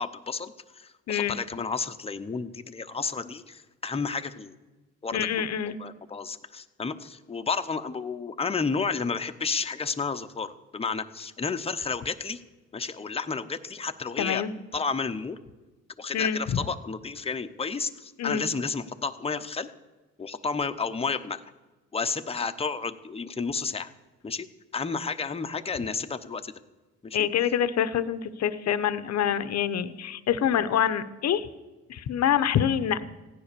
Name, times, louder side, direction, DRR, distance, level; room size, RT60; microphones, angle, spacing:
voice 1, 0.0-4.6 5.0-12.4 12.7-14.4 14.7-15.4 16.0-19.7 20.2-21.4 21.9-23.9 24.2-24.5 24.7-26.5 27.0-27.2, left 5 dB, 20° left, 8 dB, 0.8 m, -31 dB
voice 2, 1.1-1.4 5.1-5.8 14.2-14.5 16.1-16.4 18.2-18.5 27.1-31.5 31.9-33.0, left 9 dB, 60° left, 13 dB, 0.9 m, -26 dB
15.5 x 10.0 x 6.8 m, 1.2 s
cardioid pair, 90°, 30 cm